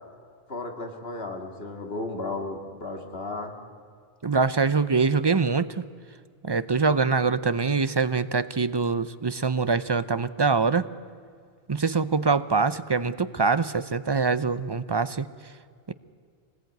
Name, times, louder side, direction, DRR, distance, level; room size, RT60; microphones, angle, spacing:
voice 1, 0.5-3.6, left 2 dB, 70° left, 3 dB, 2.5 m, -34 dB
voice 2, 4.2-5.8 6.4-10.9 11.7-15.3 15.9-16.0, right 4 dB, 30° right, 14 dB, 0.5 m, -24 dB
24.0 x 19.5 x 9.3 m, 2.1 s
omnidirectional pair, 1.0 m